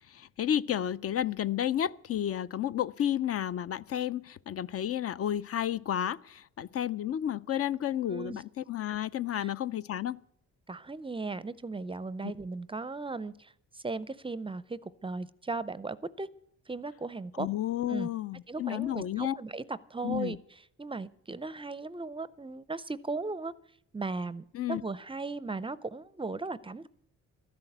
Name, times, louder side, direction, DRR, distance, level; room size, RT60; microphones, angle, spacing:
voice 1, 0.0-10.2 12.2-12.3 17.4-19.4 20.0-20.4 24.5-24.8, left 11 dB, 50° left, 0.5 m, -31 dB
voice 2, 8.1-8.4 9.3-9.5 10.7-16.3 16.7-17.5 17.9-18.1 18.5-20.4 20.8-23.5 23.9-26.9, right 3 dB, 15° right, 0.5 m, -37 dB
13.0 x 11.5 x 7.9 m
cardioid pair, 90°, 30 cm